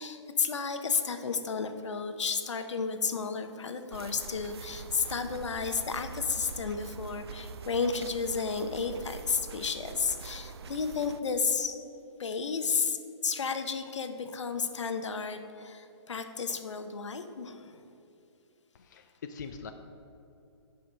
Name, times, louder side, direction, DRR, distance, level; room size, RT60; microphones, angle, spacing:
voice 1, 0.0-11.8 12.2-17.8, left 5 dB, 80° left, 8 dB, 0.9 m, -32 dB
sound 1, 3.9-11.2, right 6 dB, 60° right, 0.4 m, -44 dB
voice 2, 18.7-19.7, left 5 dB, 40° left, 6 dB, 0.4 m, -42 dB
9.7 x 5.0 x 6.1 m, 2.8 s
hypercardioid pair, 170°, 15 cm